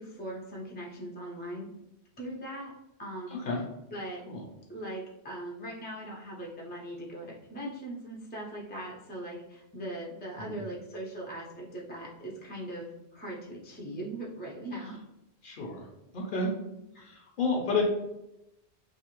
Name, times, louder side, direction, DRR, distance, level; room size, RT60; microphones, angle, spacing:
voice 1, 0.0-1.7 2.2-2.7 3.0-3.4 3.9-4.3 4.7-15.0 16.9-17.1, right 1 dB, 15° left, -3 dB, 0.3 m, -40 dB
voice 2, 15.4-15.9 16.1-16.5 17.0-17.8, left 3 dB, 55° left, 0 dB, 0.7 m, -30 dB
2.5 x 2.4 x 2.9 m, 0.88 s
omnidirectional pair, 1.1 m